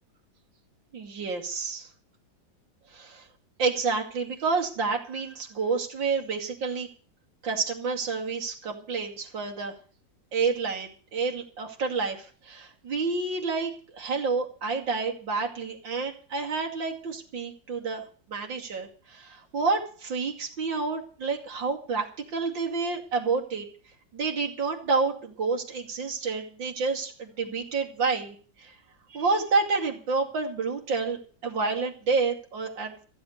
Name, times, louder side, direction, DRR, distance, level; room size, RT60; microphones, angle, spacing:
voice 1, 0.9-1.9 2.9-3.2 3.6-6.9 7.4-9.7 10.3-18.0 18.3-22.0 22.3-23.7 24.1-28.7 29.1-33.0, right 4 dB, 85° right, 2 dB, 3.2 m, -29 dB
14.5 x 8.0 x 8.0 m, 0.41 s
omnidirectional pair, 2.0 m